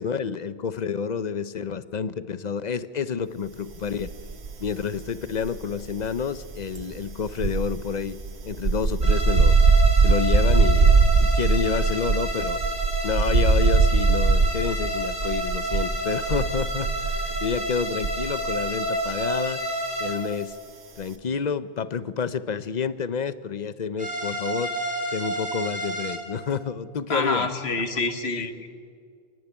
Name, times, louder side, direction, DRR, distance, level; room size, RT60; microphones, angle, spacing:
voice 1, 0.0-4.1 4.6-8.2 8.4-9.6 10.0-12.6 13.0-19.6 20.0-20.6 21.0-24.7 25.1-27.5 28.3-28.5, left 6 dB, 45° left, 14 dB, 0.8 m, -29 dB
sound 1, 4.0-4.8 5.1-18.6 18.9-19.1, right 4 dB, 90° right, 1.6 m, -21 dB
sound 2, 9.0-20.2 24.0-26.2, right 1 dB, 35° right, 3.4 m, -30 dB
voice 2, 27.1-28.7, left 3 dB, 90° left, 7 dB, 1.8 m, -27 dB
30.0 x 10.5 x 10.0 m, 2.2 s
omnidirectional pair, 1.0 m